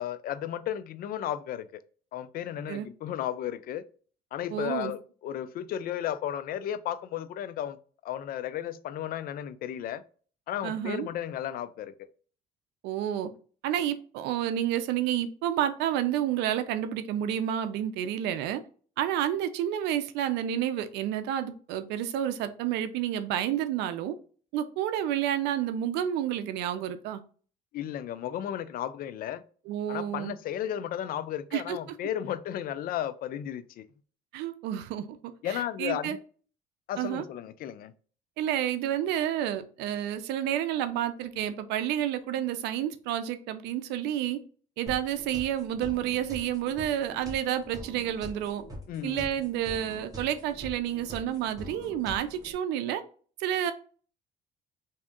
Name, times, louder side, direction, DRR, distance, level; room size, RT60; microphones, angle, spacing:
voice 1, 0.0-1.8 2.1-3.8 4.3-7.8 8.0-10.0 10.5-11.9 27.7-29.4 29.9-33.8 35.4-36.2 36.9-37.9 48.9-49.3, left 11 dB, 60° left, 0.4 m, -34 dB
voice 2, 4.5-4.9 10.6-11.1 12.8-13.3 13.6-18.6 19.0-24.2 24.5-27.2 29.7-30.3 31.5-31.8 34.3-35.2 35.5-36.2 37.0-37.2 38.4-44.4 44.8-48.6 49.0-53.0 53.4-53.7, right 11 dB, 90° right, 0.5 m, -30 dB
sound 1, 44.9-52.5, equal, 20° right, 1.4 m, -44 dB
3.6 x 2.8 x 3.4 m
cardioid pair, 110°, 17 cm